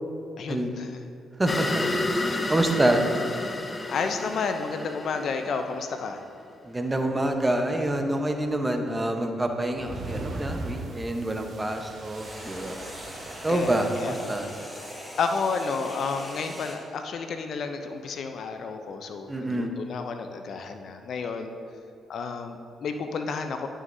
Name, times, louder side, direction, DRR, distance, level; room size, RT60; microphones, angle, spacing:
voice 1, 0.4-0.9 2.2-2.5 3.9-6.2 13.5-14.2 15.2-21.6 22.1-23.7, left 5 dB, 65° left, 6 dB, 0.5 m, -31 dB
voice 2, 1.4-3.0 6.6-12.8 13.4-14.5 19.3-19.7, right 1 dB, 20° right, 4 dB, 0.9 m, -27 dB
sound 1, 1.5-6.1, left 2 dB, 25° left, 0.7 m, -30 dB
sound 2, 5.8-10.9 12.0-16.8, equal, 10° left, 1.7 m, -42 dB
sound 3, 9.7-14.7, right 2 dB, 50° right, 1.0 m, -39 dB
11.0 x 6.2 x 2.7 m, 2.6 s
supercardioid pair, 60°, 0 cm